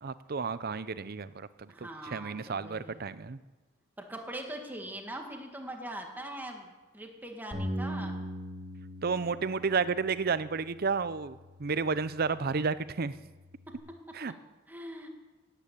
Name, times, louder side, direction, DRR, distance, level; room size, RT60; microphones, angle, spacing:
voice 1, 0.0-3.4 9.0-13.1 14.1-14.3, right 5 dB, 50° right, 15 dB, 0.6 m, -32 dB
voice 2, 1.7-3.1 4.0-8.3 14.7-15.1, right 1 dB, 10° right, 2 dB, 1.8 m, -42 dB
Bass guitar, 7.5-13.8, equal, 35° right, 4.4 m, -41 dB
17.5 x 9.3 x 8.5 m, 1.2 s
head